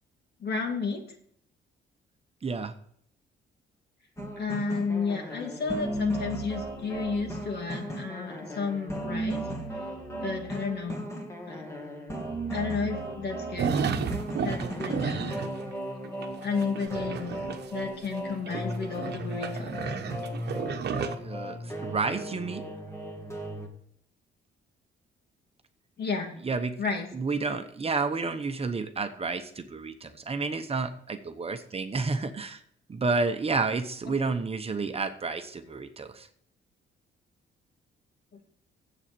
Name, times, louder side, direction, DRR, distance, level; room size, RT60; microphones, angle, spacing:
voice 1, 0.4-1.0 4.4-9.5 10.2-11.1 11.5-11.7 12.5-13.7 14.4-15.4 16.4-17.4 17.7-19.8 26.0-26.4 26.8-27.1, left 5 dB, 55° left, 3 dB, 2.4 m, -32 dB
voice 2, 2.4-2.7 20.9-22.7 26.4-26.7 27.1-32.6 32.9-36.3, right 4 dB, 30° right, 7 dB, 1.0 m, -30 dB
sound 1, 4.2-23.7, right 1 dB, 15° left, 2.1 m, -36 dB
sound 2, 13.6-15.7 16.0-18.2 18.5-21.2, right 6 dB, 55° right, 1.1 m, -32 dB
7.9 x 7.2 x 6.9 m, 0.65 s
cardioid pair, 90°, 20 cm